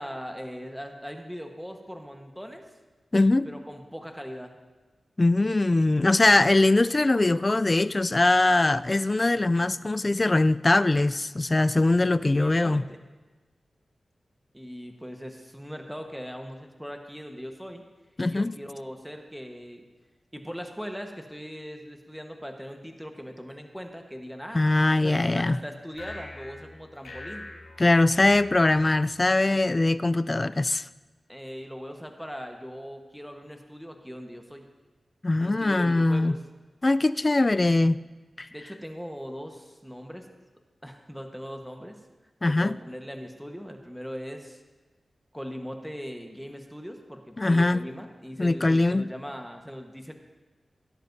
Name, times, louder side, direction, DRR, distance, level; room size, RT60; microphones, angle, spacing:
voice 1, 0.0-2.6 3.4-4.5 12.2-13.0 14.5-17.8 18.2-19.8 20.3-24.6 24.9-27.5 29.5-29.8 31.3-34.7 35.4-36.4 38.5-40.3 40.8-42.0 42.4-44.6 45.3-50.1, equal, ahead, 1.3 m, -40 dB
voice 2, 3.1-3.5 5.2-12.8 18.2-18.5 24.5-25.6 27.8-30.9 35.2-36.3 36.8-38.0 38.4-38.5 42.4-42.8 47.4-47.8 48.4-49.1, left 2 dB, 35° left, 0.3 m, -22 dB
sound 1, 25.9-29.4, left 2 dB, 85° left, 2.6 m, -44 dB
17.5 x 10.5 x 2.7 m
cardioid pair, 50°, 0 cm